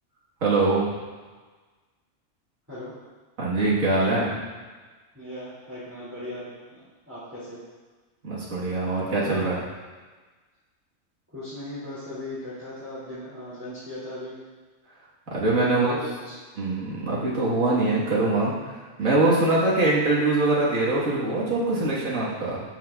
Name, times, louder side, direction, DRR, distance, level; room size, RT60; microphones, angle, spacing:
voice 1, 0.4-0.9 3.4-4.4 8.2-9.6 15.3-15.9 16.6-18.6 19.0-22.6, right 2 dB, 80° right, -7 dB, 1.9 m, -23 dB
voice 2, 5.1-7.6 11.3-14.4 15.6-16.4, left 1 dB, 10° right, -13 dB, 2.4 m, -37 dB
13.0 x 6.1 x 2.4 m, 1.4 s
omnidirectional pair, 1.4 m